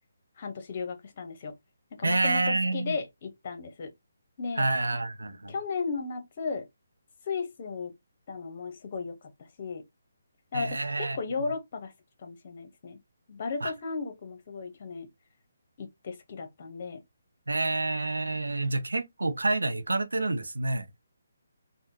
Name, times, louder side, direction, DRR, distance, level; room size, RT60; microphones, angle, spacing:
voice 1, 0.4-1.5 2.0-3.9 4.4-4.7 5.5-6.7 7.3-8.0 8.3-9.2 9.6-9.8 10.5-11.9 12.2-13.0 13.3-15.1 15.8-17.0, left 4 dB, 45° left, 0.9 m, -35 dB
voice 2, 2.0-2.9 4.6-5.5 10.5-11.2 13.6-13.7 17.5-20.9, right 2 dB, 85° right, 0.6 m, -28 dB
3.6 x 2.1 x 2.7 m
figure-of-eight pair, 150°, 0 cm